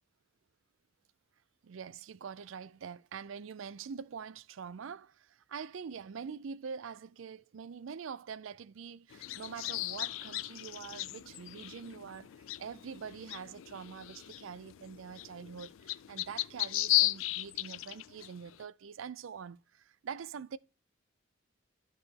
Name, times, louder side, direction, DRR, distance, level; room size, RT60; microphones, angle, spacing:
voice 1, 1.6-12.3 12.6-20.6, right 6 dB, 75° right, 0.4 m, -45 dB
sound 1, 9.1-18.6, left 17 dB, 80° left, 0.3 m, -36 dB
13.0 x 4.8 x 2.8 m
head